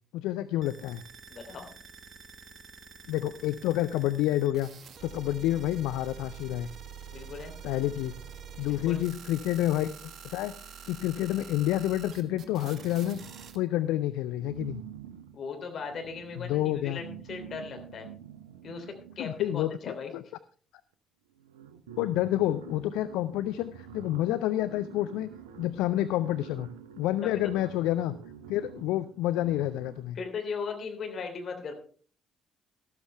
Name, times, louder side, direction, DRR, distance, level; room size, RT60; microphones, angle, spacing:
voice 1, 0.1-1.0 3.1-4.7 5.0-6.7 7.6-8.1 8.6-10.5 10.9-13.2 13.5-14.8 16.4-17.0 19.2-20.2 22.0-25.3 25.6-26.7 27.0-28.2 28.5-30.2, left 14 dB, 65° left, 13 dB, 0.4 m, -29 dB
sound 1, 0.6-13.6, right 6 dB, 50° right, 1.5 m, -47 dB
voice 2, 1.3-1.7 7.1-7.5 8.7-9.0 15.3-18.1 18.6-20.1 27.2-27.3 30.1-31.7, left 5 dB, 50° left, 4 dB, 3.1 m, -38 dB
sound 2, 12.1-13.9 14.3-20.0 20.9-21.0 21.3-30.2, right 9 dB, 75° right, 0.8 m, -48 dB
13.0 x 13.0 x 3.3 m, 0.41 s
figure-of-eight pair, 45°, 0 cm